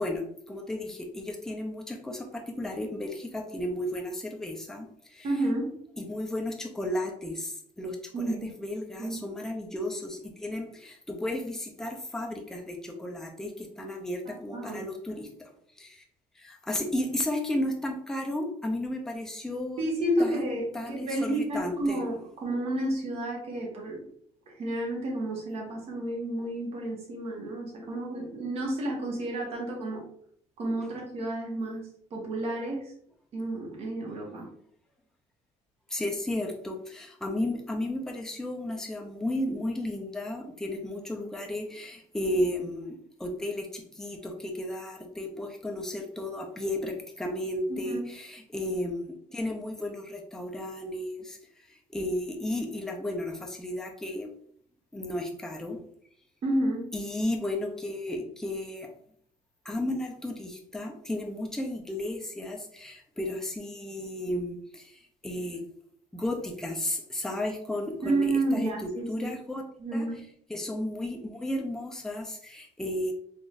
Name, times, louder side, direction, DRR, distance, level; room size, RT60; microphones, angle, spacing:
voice 1, 0.0-5.3 6.0-16.0 16.4-19.8 20.2-22.0 35.9-54.3 54.9-55.8 56.9-58.9 59.6-65.6 66.1-69.6 69.9-70.1 70.5-73.1, left 1 dB, 5° left, 1 dB, 0.5 m, -34 dB
voice 2, 5.2-5.7 8.1-8.5 9.0-9.2 14.3-14.8 19.8-24.0 24.5-30.0 30.6-32.9 33.3-34.5 47.7-48.0 56.4-56.9 68.0-69.3 69.8-70.2, right 1 dB, 55° right, -1 dB, 1.3 m, -31 dB
3.9 x 3.0 x 2.5 m, 0.63 s
cardioid pair, 135°, 13 cm